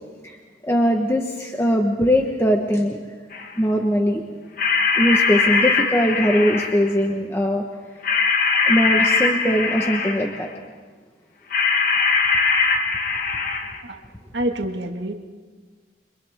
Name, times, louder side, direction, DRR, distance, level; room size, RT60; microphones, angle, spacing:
voice 1, 0.6-3.0 3.6-4.2 5.0-7.6 8.6-10.5, equal, 15° left, 2 dB, 1.2 m, -20 dB
sound 1, 3.3-3.5 4.6-6.9 8.0-10.5 11.5-13.8, left 4 dB, 50° left, 1.3 m, -21 dB
voice 2, 14.3-15.1, right 1 dB, 80° right, 4 dB, 1.7 m, -26 dB
30.0 x 25.0 x 3.6 m, 1.5 s
head